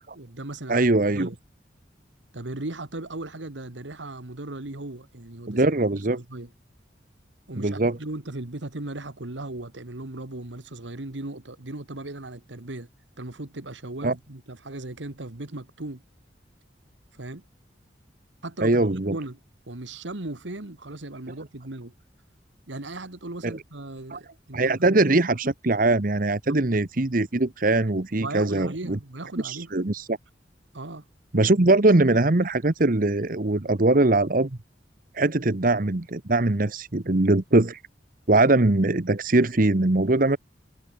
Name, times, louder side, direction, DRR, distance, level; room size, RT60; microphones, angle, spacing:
voice 1, 0.1-1.4 2.3-6.5 7.5-12.9 13.2-16.0 17.1-17.4 18.4-19.4 19.7-21.9 22.7-25.0 26.5-26.6 28.2-29.7 30.7-31.1, right 2 dB, 85° right, 1.9 m, -37 dB
voice 2, 0.7-1.3 5.5-6.2 7.6-8.0 14.0-14.1 18.6-19.2 23.4-23.6 24.1-24.2 24.5-29.0 29.4-30.2 31.3-34.6 35.1-37.8 38.3-40.4, right 2 dB, 50° right, 1.1 m, -21 dB
head